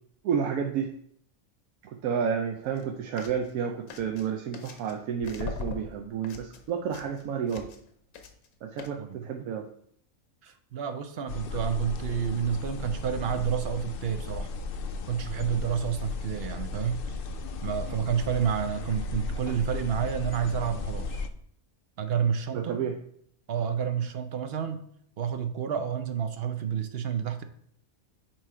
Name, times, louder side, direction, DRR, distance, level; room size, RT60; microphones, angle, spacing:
voice 1, 0.2-0.9 1.8-7.7 8.6-9.7 22.5-23.0, right 7 dB, 90° right, 4 dB, 1.1 m, -31 dB
sound 1, 2.6-2.8 3.2-3.5 3.9-5.0 5.2-8.5 8.8-8.9, left 4 dB, 90° left, 1.3 m, -40 dB
voice 2, 10.4-14.5 15.1-17.0 17.6-21.3 22.0-22.9 23.5-24.8 25.2-27.4, right 8 dB, 60° right, 9 dB, 0.7 m, -30 dB
sound 2, 11.3-21.3, left 3 dB, 65° left, 0.6 m, -35 dB
8.8 x 3.1 x 4.8 m, 0.65 s
omnidirectional pair, 1.5 m